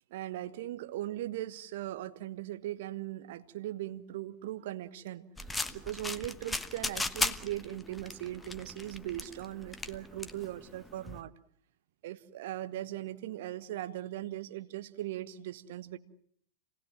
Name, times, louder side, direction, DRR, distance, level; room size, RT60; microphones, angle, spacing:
voice 1, 0.1-5.3 5.7-11.3 12.0-16.0, right 14 dB, 55° right, 10 dB, 1.4 m, -39 dB
sound 1, 5.4-11.2, left 2 dB, 10° left, 1.2 m, -37 dB
27.5 x 19.0 x 7.5 m, 0.63 s
figure-of-eight pair, 90°, 0 cm